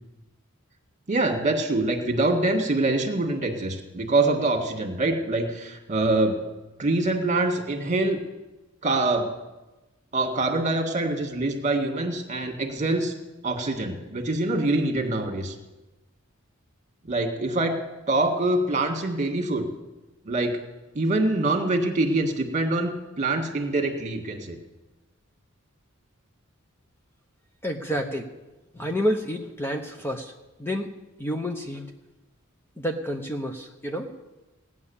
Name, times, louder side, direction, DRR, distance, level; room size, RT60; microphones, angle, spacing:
voice 1, 1.1-6.4 6.8-8.2 8.8-9.3 10.1-13.1 13.4-15.6 17.1-17.8 18.1-19.7 20.3-20.6 20.9-24.6, right 2 dB, 35° right, 4 dB, 2.0 m, -25 dB
voice 2, 27.6-28.3 28.7-30.3 30.6-30.9 31.2-31.9 32.8-34.1, equal, 10° left, 4 dB, 0.9 m, -29 dB
17.5 x 9.8 x 7.2 m, 1.1 s
head